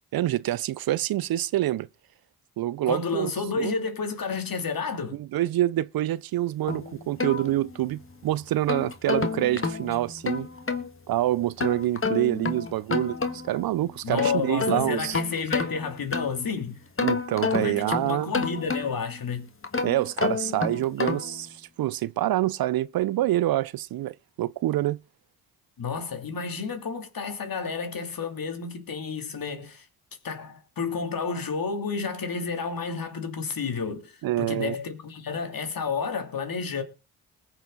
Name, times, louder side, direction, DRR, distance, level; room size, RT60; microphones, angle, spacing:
voice 1, 0.1-1.9 2.6-3.3 3.6-3.7 5.2-10.5 11.1-15.2 17.0-18.3 19.8-25.0 34.2-34.8, right 14 dB, 55° right, 0.5 m, -26 dB
voice 2, 2.9-5.2 14.0-16.8 17.6-19.5 25.8-29.9 30.2-36.8, left 5 dB, 50° left, 2.9 m, -31 dB
sound 1, 6.7-8.0 8.5-10.9 11.6-13.6 14.0-16.5 17.0-19.1 19.6-21.4, left 4 dB, 30° left, 1.7 m, -30 dB
20.5 x 7.0 x 3.9 m
hypercardioid pair, 45°, 43 cm